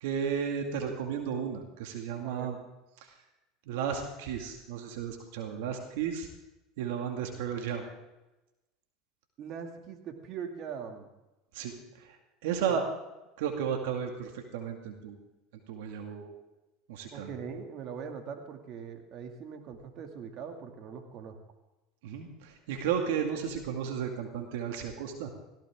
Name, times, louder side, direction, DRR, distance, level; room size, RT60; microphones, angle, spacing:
voice 1, 0.0-2.6 3.0-3.2 3.7-6.3 6.8-7.8 11.5-12.8 13.4-15.2 15.7-16.4 16.9-17.3 22.0-25.3, right 7 dB, 75° right, 3 dB, 2.1 m, -34 dB
voice 2, 9.4-11.1 12.7-12.8 17.1-21.4 23.5-23.6, right 6 dB, 50° right, 4 dB, 2.4 m, -41 dB
18.0 x 16.5 x 3.7 m, 1.0 s
supercardioid pair, 100°, 0 cm